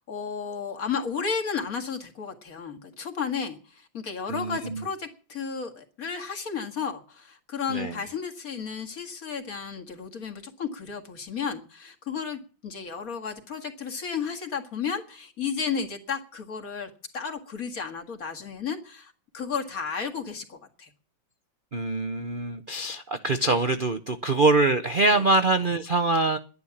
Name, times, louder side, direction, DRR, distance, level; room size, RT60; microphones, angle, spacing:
voice 1, 0.0-20.9 25.1-25.2, left 6 dB, 50° left, 4 dB, 2.4 m, -33 dB
voice 2, 4.3-4.8 7.7-8.0 21.7-26.4, right 2 dB, 45° right, 9 dB, 0.7 m, -24 dB
11.5 x 10.5 x 7.1 m, 0.37 s
omnidirectional pair, 2.1 m